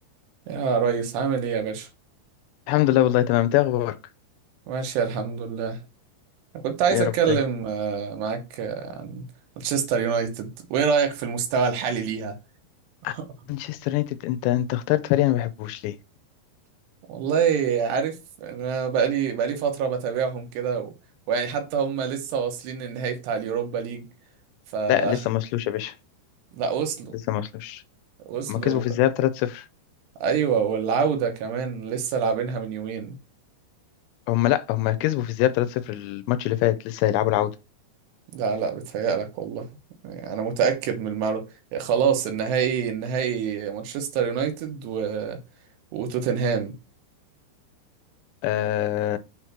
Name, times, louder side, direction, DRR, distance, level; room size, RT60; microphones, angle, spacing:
voice 1, 0.5-1.9 4.7-5.8 6.5-9.3 9.6-12.4 13.1-13.2 17.1-20.9 21.3-24.1 24.7-25.2 26.5-27.2 28.3-28.8 30.2-33.2 38.3-39.7 40.0-41.5 41.7-45.4 45.9-46.8, right 6 dB, 75° right, 3.0 m, -26 dB
voice 2, 2.7-4.0 6.9-7.4 13.0-13.1 13.5-16.0 24.9-25.9 27.3-27.8 28.5-29.7 34.3-37.5 48.4-49.2, left 14 dB, 85° left, 2.8 m, -23 dB
6.5 x 3.1 x 5.8 m
omnidirectional pair, 5.0 m